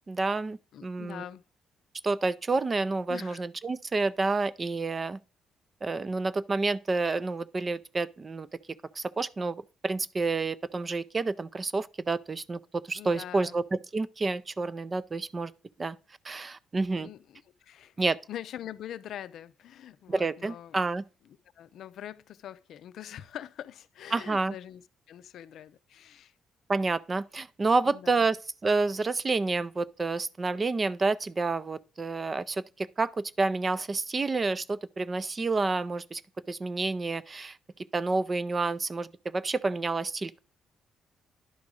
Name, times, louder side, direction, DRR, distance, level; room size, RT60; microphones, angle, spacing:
voice 1, 0.1-1.2 2.0-5.2 5.8-8.5 9.0-15.5 15.8-16.0 16.2-17.1 18.0-18.2 20.1-21.0 24.1-24.5 26.7-28.4 28.6-36.2 36.5-37.6 37.9-40.3, right 3 dB, 30° right, 0.5 m, -29 dB
voice 2, 0.7-1.4 3.1-3.4 12.9-13.6 17.0-20.8 21.6-26.3 27.9-28.3, left 11 dB, 75° left, 0.5 m, -44 dB
10.5 x 3.6 x 6.2 m
cardioid pair, 90°, 0 cm